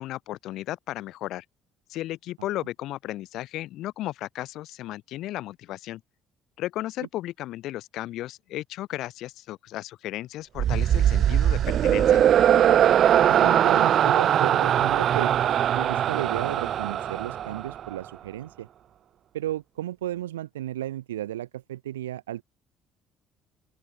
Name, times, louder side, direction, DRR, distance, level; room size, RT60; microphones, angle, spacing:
voice 1, 0.0-1.4 1.9-6.0 6.6-12.2, left 15 dB, 60° left, 7.2 m, -34 dB
sound 1, 10.6-17.9, right 10 dB, 50° right, 0.6 m, -21 dB
voice 2, 13.3-15.3 15.7-18.7 19.3-22.4, right 13 dB, 75° right, 6.9 m, -34 dB
open air
figure-of-eight pair, 50°, 0 cm